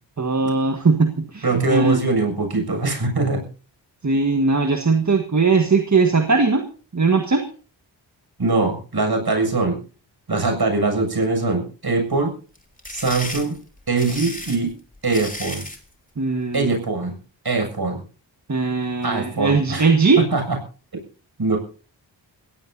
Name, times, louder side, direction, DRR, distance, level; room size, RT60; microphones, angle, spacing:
voice 1, 0.2-2.0 4.0-6.6 6.9-7.4 16.2-16.7 18.5-20.2, right 4 dB, 40° right, 5 dB, 1.7 m, -19 dB
voice 2, 1.4-3.4 8.4-9.8 10.3-12.3 12.9-13.5 13.9-14.7 15.0-15.6 16.5-17.1 17.4-18.0 19.0-19.9 20.2-20.6 21.4-21.6, right 3 dB, 55° right, 4 dB, 7.3 m, -22 dB
sound 1, 12.5-15.8, left 1 dB, 20° left, 3.2 m, -34 dB
22.0 x 17.0 x 2.8 m, 0.38 s
cardioid pair, 40°, 46 cm